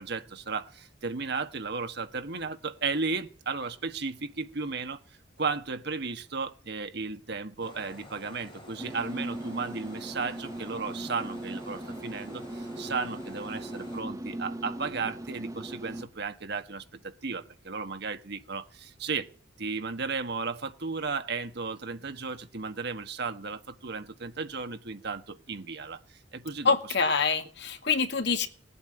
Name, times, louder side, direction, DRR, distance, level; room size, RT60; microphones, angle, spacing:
voice 1, 0.0-5.0 5.4-19.3 19.6-26.0 26.3-26.7, right 4 dB, 65° right, 1.4 m, -34 dB
sound 1, 7.6-14.0, left 1 dB, 25° left, 3.4 m, -49 dB
sound 2, 8.8-16.0, right 1 dB, 20° right, 1.2 m, -39 dB
voice 2, 26.6-28.5, left 5 dB, 65° left, 2.1 m, -26 dB
19.0 x 8.6 x 8.8 m
head